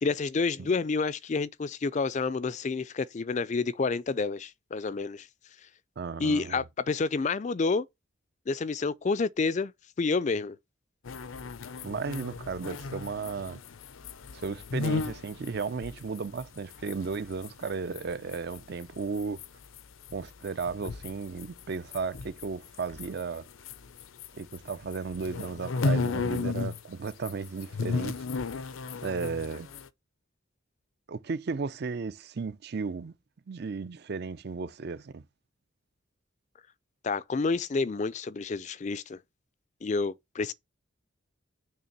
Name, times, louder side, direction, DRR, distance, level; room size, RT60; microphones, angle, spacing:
voice 1, 0.0-5.3 6.2-7.9 8.5-9.7 10.0-10.6 37.0-39.2 39.8-40.5, left 4 dB, 35° left, 0.4 m, -29 dB
voice 2, 6.0-6.6 11.8-13.6 14.3-19.4 20.1-23.5 24.3-28.2 29.0-29.7 31.1-33.1 33.5-35.2, right 4 dB, 50° right, 0.5 m, -35 dB
sound 1, 11.1-18.0 18.3-24.3 24.5-26.8 27.1-29.9, left 4 dB, 80° left, 0.6 m, -34 dB
6.6 x 3.3 x 5.9 m
head